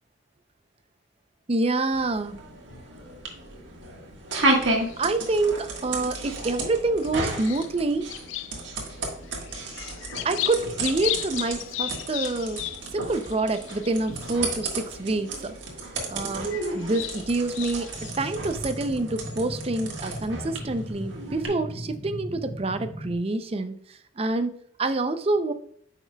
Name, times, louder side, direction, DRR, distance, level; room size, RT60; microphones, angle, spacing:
voice 1, 1.5-2.4 5.0-8.1 10.2-12.6 12.9-15.6 16.1-25.5, right 2 dB, 30° right, 9 dB, 0.5 m, -27 dB
sound 1, 1.9-21.5, right 2 dB, 70° right, 1.5 m, -33 dB
sound 2, 4.3-5.3 5.8-6.6 7.0-8.9 9.2-14.5 15.1-15.2 16.3-18.5, left 14 dB, 85° left, 0.3 m, -36 dB
sound 3, 17.9-23.1, equal, 10° right, 1.0 m, -37 dB
9.1 x 5.6 x 2.3 m, 0.62 s
head